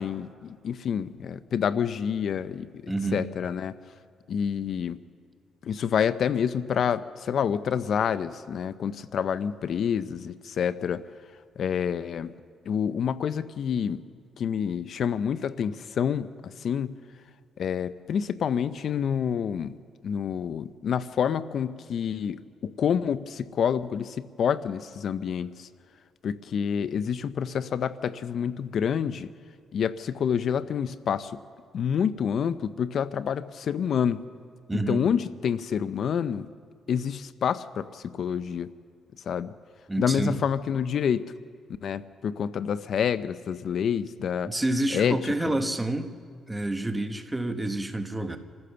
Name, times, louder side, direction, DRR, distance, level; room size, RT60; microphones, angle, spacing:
voice 1, 0.0-3.7 4.3-5.0 5.6-11.0 11.6-12.3 12.7-14.0 14.4-17.0 17.6-19.7 20.0-25.7 26.2-29.3 29.7-31.4 31.7-34.2 34.7-36.5 36.9-38.7 39.3-39.5 40.0-41.2 41.8-44.5 44.9-45.3, left 8 dB, 60° left, 14 dB, 0.6 m, -28 dB
voice 2, 2.9-3.3 34.7-35.0 39.9-40.4 44.4-46.2 46.5-48.4, right 2 dB, 10° right, 7 dB, 1.4 m, -28 dB
27.5 x 15.0 x 6.9 m, 2.1 s
cardioid pair, 90°, 0 cm